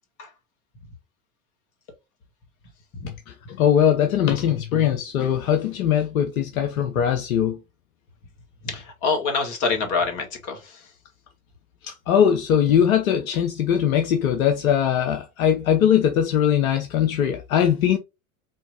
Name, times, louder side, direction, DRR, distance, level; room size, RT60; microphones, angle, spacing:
voice 1, 3.3-7.6 11.8-18.0, left 9 dB, 75° left, 0.7 m, -21 dB
voice 2, 8.6-10.8, left 4 dB, 45° left, 1.8 m, -26 dB
4.5 x 3.0 x 2.8 m
hypercardioid pair, 85°, 42 cm